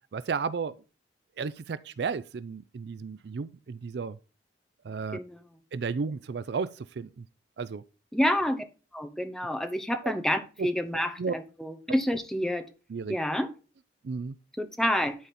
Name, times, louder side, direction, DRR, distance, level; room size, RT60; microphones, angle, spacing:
voice 1, 0.1-0.7 1.4-4.2 4.8-5.2 5.7-7.2 7.6-7.8 10.0-10.1 10.6-10.7 11.2-11.3 12.9-13.2 14.0-14.4, right 5 dB, 65° right, 0.4 m, -33 dB
voice 2, 8.1-8.6 8.9-12.6 13.1-13.5 14.6-15.1, equal, 5° left, 0.8 m, -28 dB
11.0 x 4.1 x 4.2 m
head